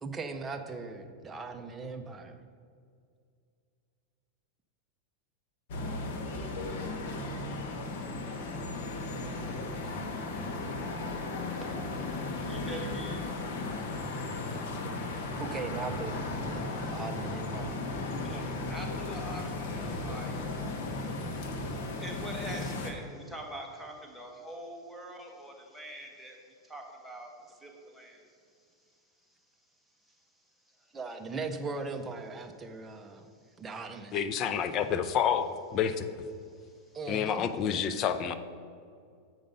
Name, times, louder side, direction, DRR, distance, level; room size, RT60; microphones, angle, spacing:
voice 1, 0.0-2.4 15.4-17.8 30.9-33.3 33.6-34.2 36.9-37.5, right 3 dB, 15° right, 0.6 m, -39 dB
sound 1, 5.7-22.9, left 2 dB, 65° left, 1.1 m, -35 dB
voice 2, 11.6-13.2 18.1-21.2 21.5-26.4 26.6-27.3 27.6-28.2 31.1-31.2, right 1 dB, ahead, 1.2 m, -45 dB
voice 3, 34.1-36.1 37.1-38.3, left 8 dB, 35° left, 0.4 m, -29 dB
7.9 x 5.2 x 5.3 m
supercardioid pair, 145°, 0 cm